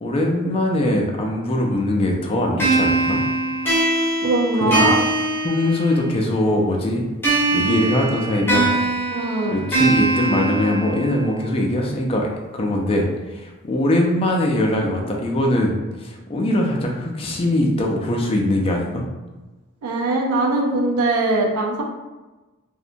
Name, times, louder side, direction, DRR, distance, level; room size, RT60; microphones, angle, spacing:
voice 1, 0.0-3.2 4.6-4.9 5.4-7.0 7.5-8.7 9.5-19.0, left 1 dB, 25° left, 0 dB, 0.4 m, -21 dB
sound 1, 2.6-6.2 7.2-11.2, right 2 dB, 10° left, 0.8 m, -22 dB
voice 2, 4.2-5.0 9.1-9.6 19.8-21.8, right 2 dB, 75° right, 1 dB, 0.4 m, -21 dB
2.7 x 2.1 x 2.5 m, 1.2 s
head